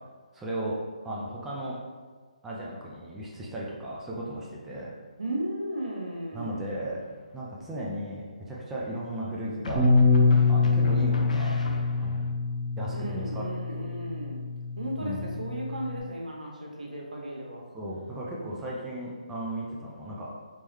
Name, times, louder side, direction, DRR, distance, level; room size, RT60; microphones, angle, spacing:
voice 1, 0.3-0.8 1.0-1.8 2.4-4.9 6.3-7.1 7.3-9.9 10.5-11.6 11.9-12.2 12.8-13.8 15.0-15.2 17.7-20.3, right 1 dB, 10° right, -6 dB, 0.5 m, -35 dB
voice 2, 5.2-6.7 12.9-14.4 14.8-17.7, right 1 dB, 85° right, -2 dB, 1.0 m, -35 dB
sound 1, 7.0-7.6 9.6-12.3, left 3 dB, 70° left, 0.5 m, -38 dB
Bass guitar, 9.7-16.0, left 4 dB, 25° right, 1.2 m, -25 dB
3.6 x 3.1 x 3.1 m, 1.5 s
figure-of-eight pair, 150°, 4 cm